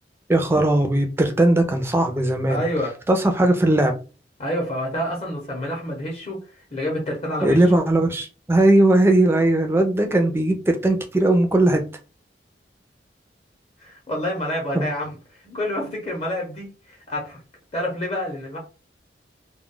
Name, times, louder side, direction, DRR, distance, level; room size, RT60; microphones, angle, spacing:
voice 1, 0.3-2.6 3.1-3.9 7.4-11.8 14.7-14.9, right 1 dB, 15° right, 0.4 m, -18 dB
voice 2, 2.5-2.9 4.4-6.4 6.7-7.6 13.8-15.1 15.4-17.4 17.7-18.6, equal, 35° left, 0.8 m, -28 dB
2.3 x 2.1 x 3.7 m
head